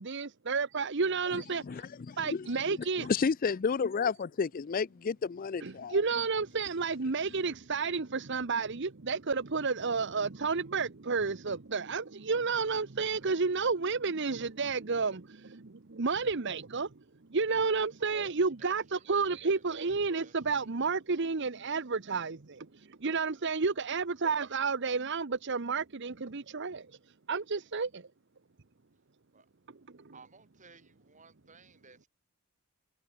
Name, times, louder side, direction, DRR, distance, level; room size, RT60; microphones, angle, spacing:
voice 1, 0.0-1.9 2.2-3.1 5.6-16.9 17.3-26.9 27.3-28.1, right 4 dB, 55° right, 0.9 m, -31 dB
voice 2, 2.1-2.4 3.0-6.0, left 5 dB, 40° left, 0.4 m, -31 dB
voice 3, 18.6-19.0 19.4-20.3 24.8-24.9 29.3-29.4 30.1-32.1, right 4 dB, 35° right, 7.9 m, -58 dB
head